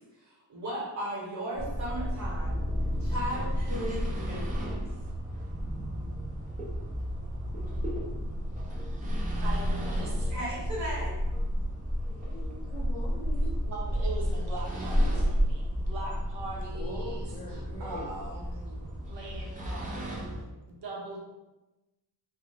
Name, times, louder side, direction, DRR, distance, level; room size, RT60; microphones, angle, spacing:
voice 1, 0.0-2.6 3.0-4.8 10.3-11.1, right 1 dB, 45° right, -6 dB, 1.2 m, -36 dB
sound 1, 1.6-20.4, equal, 20° right, 0.5 m, -31 dB
voice 2, 9.1-10.6 13.7-21.2, right 2 dB, 75° right, -3 dB, 0.8 m, -42 dB
voice 3, 12.0-13.5 16.7-18.1, left 2 dB, 20° left, -7 dB, 0.9 m, -42 dB
2.4 x 2.2 x 3.5 m, 1.0 s
wide cardioid pair, 140°, 42 cm